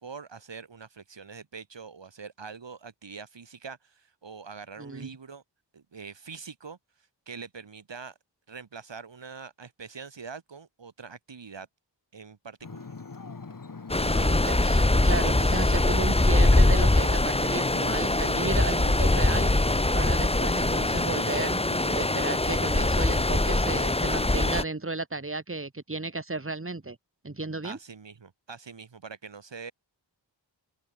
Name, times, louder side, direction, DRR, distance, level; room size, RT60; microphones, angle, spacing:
voice 1, 0.0-5.4 5.7-6.8 7.3-8.1 8.5-11.7 12.1-12.9 27.6-29.7, right 5 dB, 75° right, 2.4 m, -43 dB
voice 2, 4.8-5.1 14.1-19.5 19.9-27.0 27.2-27.8, right 3 dB, 30° right, 2.9 m, -34 dB
Ocean, 12.6-23.4, left 4 dB, 45° left, 2.2 m, -42 dB
Stream, 13.9-24.6, left 2 dB, 15° left, 1.0 m, -23 dB
open air
wide cardioid pair, 80°, 44 cm